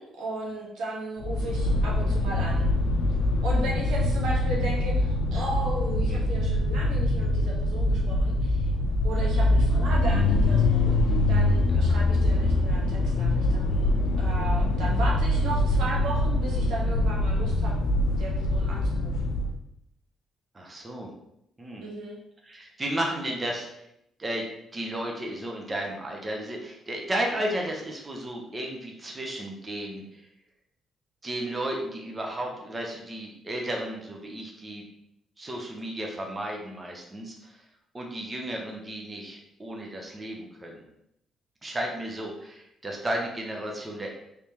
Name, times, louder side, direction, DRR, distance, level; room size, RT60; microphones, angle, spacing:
voice 1, 0.0-2.7 3.4-8.7 9.0-11.0 11.3-13.9 14.2-17.7 18.2-19.3 21.8-22.2, right 2 dB, 85° right, -3 dB, 1.1 m, -35 dB
sound 1, 1.2-19.5, left 1 dB, 90° left, 0.5 m, -24 dB
voice 2, 20.5-21.1 21.6-21.8 22.4-23.7 24.2-24.5 24.7-30.2 31.2-34.8 35.4-37.6 37.9-40.8 41.6-44.1, right 1 dB, 25° right, 0 dB, 0.8 m, -33 dB
3.4 x 3.3 x 2.9 m, 0.77 s
cardioid pair, 90°, 0 cm